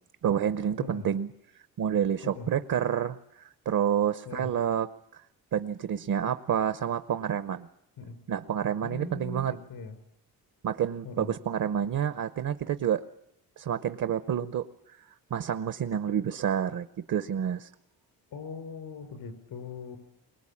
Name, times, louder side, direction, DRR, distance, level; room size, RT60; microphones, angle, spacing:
voice 1, 0.2-1.3 1.8-4.9 5.5-7.7 8.3-9.5 10.6-13.0 13.6-14.6 15.0-17.7, right 9 dB, 55° right, 11 dB, 0.8 m, -29 dB
voice 2, 8.8-10.0 11.0-11.3 18.3-20.0, left 4 dB, 80° left, 7 dB, 5.1 m, -40 dB
23.0 x 19.0 x 8.6 m, 0.83 s
cardioid pair, 100°, 36 cm